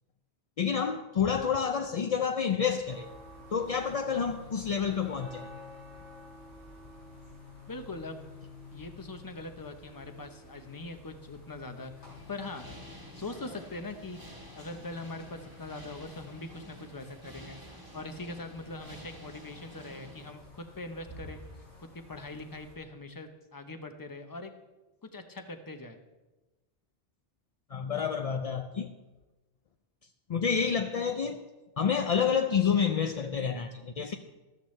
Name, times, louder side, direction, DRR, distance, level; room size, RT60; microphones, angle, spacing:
voice 1, 0.6-3.1 3.5-5.5 27.7-28.9 30.3-31.4 31.8-34.1, left 7 dB, 55° left, 6 dB, 0.4 m, -29 dB
sound 1, 2.9-22.8, left 3 dB, 80° left, 4.1 m, -51 dB
voice 2, 7.7-8.3 8.7-11.9 12.3-12.7 13.1-21.4 21.8-24.5 25.0-26.0, left 2 dB, 20° left, 7 dB, 0.7 m, -42 dB
sound 2, 12.1-20.3, equal, 20° right, 1.3 m, -50 dB
13.5 x 13.0 x 3.2 m, 1.1 s
omnidirectional pair, 1.2 m